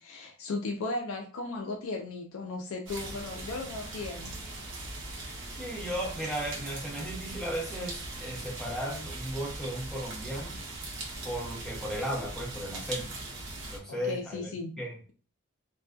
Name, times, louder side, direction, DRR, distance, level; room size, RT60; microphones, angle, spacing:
voice 1, 0.0-4.4 13.9-14.8, left 3 dB, 80° left, 0.4 m, -36 dB
sound 1, 2.9-13.8, right 2 dB, 60° right, 0.7 m, -40 dB
voice 2, 5.5-10.6 11.2-13.2 13.7-15.0, equal, ahead, 0.8 m, -35 dB
2.5 x 2.2 x 2.2 m
head